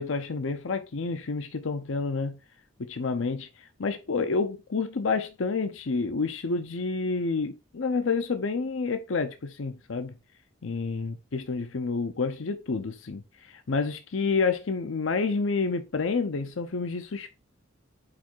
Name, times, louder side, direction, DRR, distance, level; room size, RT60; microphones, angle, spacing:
voice 1, 0.0-2.4 2.8-10.1 10.6-17.4, left 4 dB, 65° left, 0.6 m, -29 dB
4.9 x 4.6 x 4.4 m
head